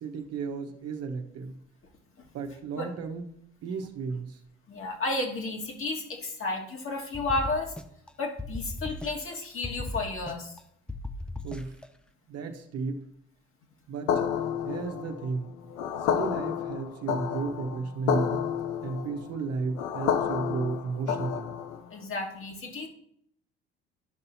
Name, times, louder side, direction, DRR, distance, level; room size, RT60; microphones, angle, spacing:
voice 1, 0.0-1.5 2.3-3.2 3.6-4.4 11.4-11.7 12.3-13.0 13.9-14.1 14.7-15.5 16.1-18.4 18.8-21.5, right 4 dB, 50° right, 3 dB, 1.0 m, -33 dB
voice 2, 4.7-7.8 8.2-10.6 21.9-22.9, left 2 dB, 40° left, 1 dB, 1.8 m, -32 dB
sound 1, 7.1-8.1 8.4-9.4 9.6-10.6 10.9-11.9, left 2 dB, 5° left, 0.4 m, -37 dB
sound 2, 14.1-21.9, left 8 dB, 60° left, 0.7 m, -30 dB
11.5 x 5.4 x 2.7 m, 0.70 s
hypercardioid pair, 60°, 32 cm